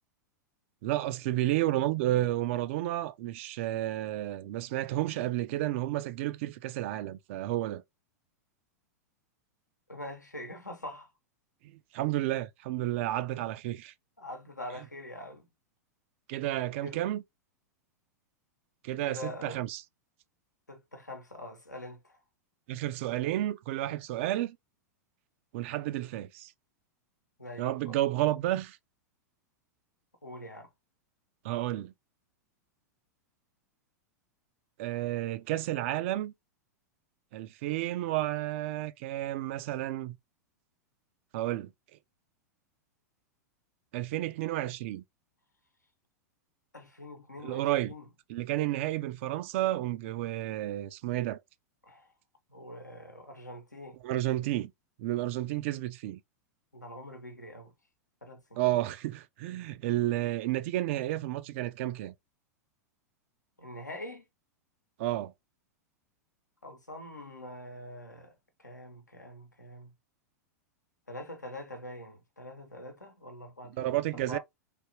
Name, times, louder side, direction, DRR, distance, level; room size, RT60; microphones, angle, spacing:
voice 1, 0.8-7.8 11.9-13.9 16.3-17.2 18.8-19.8 22.7-24.6 25.5-26.5 27.6-28.8 31.4-31.9 34.8-36.3 37.3-40.2 41.3-41.7 43.9-45.0 47.4-47.9 48.3-51.4 54.0-54.7 55.0-56.2 58.6-62.1 65.0-65.3 73.8-74.4, right 15 dB, 45° right, 0.4 m, -31 dB
voice 2, 9.9-11.1 14.2-15.5 16.8-17.0 19.0-19.6 20.7-22.2 27.4-28.0 30.2-30.7 46.7-48.0 51.8-52.1 52.5-54.0 56.7-57.7 58.2-58.8 63.6-64.2 66.6-69.9 71.1-74.4, left 1 dB, 85° left, 0.9 m, -44 dB
3.4 x 2.8 x 2.8 m
figure-of-eight pair, 95°, 9 cm